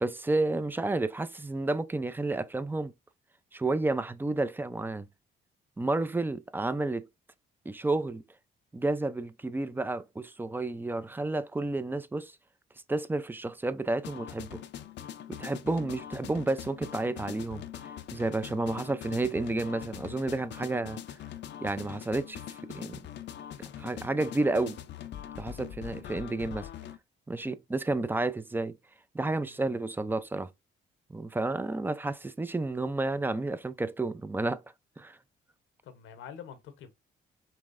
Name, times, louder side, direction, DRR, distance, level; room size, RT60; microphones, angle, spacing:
voice 1, 0.0-2.9 3.5-5.1 5.8-7.1 7.7-8.2 8.7-12.3 12.9-14.6 15.3-17.6 18.1-21.0 21.6-22.4 22.7-23.0 23.8-24.8 25.4-26.7 27.3-28.8 29.1-30.5 31.1-34.6 35.0-35.2, right 2 dB, 10° right, 0.4 m, -31 dB
sound 1, 14.0-27.0, left 10 dB, 65° left, 0.5 m, -43 dB
voice 2, 35.8-36.9, left 8 dB, 80° left, 0.9 m, -47 dB
5.5 x 3.1 x 2.5 m
cardioid pair, 90°, 20 cm